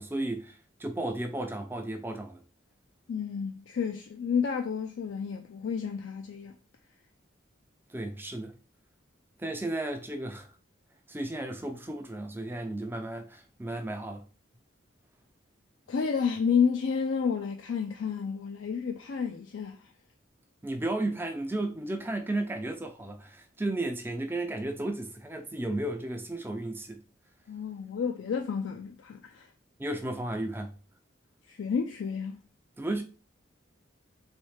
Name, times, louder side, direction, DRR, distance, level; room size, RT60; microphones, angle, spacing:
voice 1, 0.0-2.4 7.9-8.6 9.4-10.5 11.1-14.3 20.6-27.0 29.8-30.7 32.8-33.0, right 1 dB, 10° right, 0.4 m, -34 dB
voice 2, 3.1-6.5 15.9-19.9 27.5-29.5 31.5-32.3, left 6 dB, 70° left, 0.4 m, -30 dB
3.2 x 3.1 x 3.2 m
head